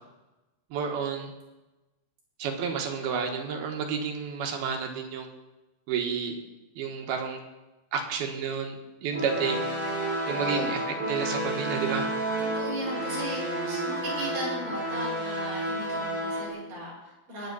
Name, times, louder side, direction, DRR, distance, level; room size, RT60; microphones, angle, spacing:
voice 1, 0.7-1.3 2.4-5.3 5.9-6.4 6.7-7.4 7.9-9.7 10.3-10.8 11.1-12.1, right 6 dB, 75° right, 3 dB, 3.3 m, -30 dB
sound 1, 9.1-16.5, right 1 dB, 20° right, 1.6 m, -31 dB
voice 2, 12.4-17.5, right 1 dB, 55° right, -4 dB, 6.8 m, -37 dB
21.5 x 8.5 x 4.1 m, 1.1 s
omnidirectional pair, 4.5 m